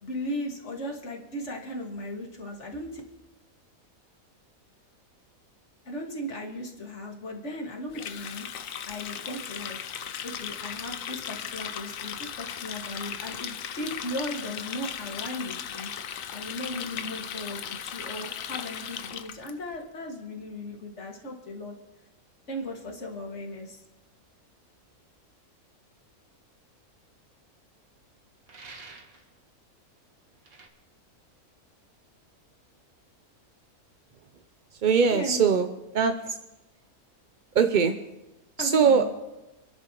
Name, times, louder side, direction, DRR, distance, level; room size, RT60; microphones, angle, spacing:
voice 1, 0.0-3.0 5.9-8.5 8.8-9.8 10.2-15.9 16.3-21.7 22.5-23.8 35.1-35.4 36.0-36.1 38.6-39.1, left 1 dB, 50° left, 0 dB, 2.3 m, -36 dB
Water tap faucet, 7.9-19.5, left 8 dB, 70° left, 1.1 m, -37 dB
sound 1, 28.5-29.3 30.4-30.7, right 4 dB, 75° right, 2.0 m, -47 dB
voice 2, 34.8-35.7 35.9-36.1 37.5-37.9 38.6-39.1, right 6 dB, 55° right, 7 dB, 0.5 m, -21 dB
28.0 x 11.0 x 3.0 m, 1.0 s
omnidirectional pair, 1.5 m